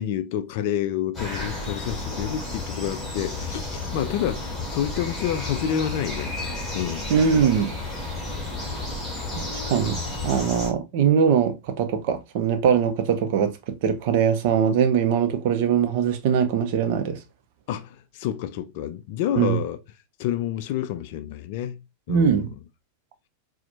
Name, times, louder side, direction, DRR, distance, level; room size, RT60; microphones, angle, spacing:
voice 1, 0.0-6.3 6.7-7.1 17.7-19.8 20.2-22.5, left 10 dB, 50° left, 0.3 m, -29 dB
sound 1, 1.1-10.7, left 2 dB, 10° left, 1.5 m, -32 dB
voice 2, 7.1-7.7 9.4-10.0 10.2-17.2 19.4-19.6 22.1-22.5, right 7 dB, 50° right, 0.5 m, -22 dB
4.1 x 2.1 x 2.6 m
figure-of-eight pair, 90°, 0 cm